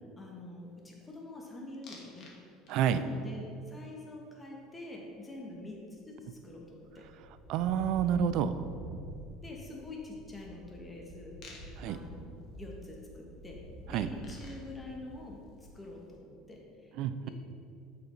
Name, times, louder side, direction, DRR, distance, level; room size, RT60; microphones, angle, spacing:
voice 1, 0.2-2.3 2.9-7.0 9.4-11.4 11.9-13.6 13.9-15.4 15.7-16.9, left 2 dB, 15° left, -2 dB, 1.3 m, -46 dB
sound 1, 1.8-2.4 2.7-3.1 5.6-5.7 5.9-16.0, equal, 50° left, 1.3 m, -48 dB
voice 2, 2.7-3.0 7.5-8.5 11.8-12.0 13.9-14.1 17.0-17.3, right 9 dB, 65° right, 12 dB, 0.3 m, -28 dB
6.4 x 4.8 x 4.4 m, 2.5 s
supercardioid pair, 115°, 0 cm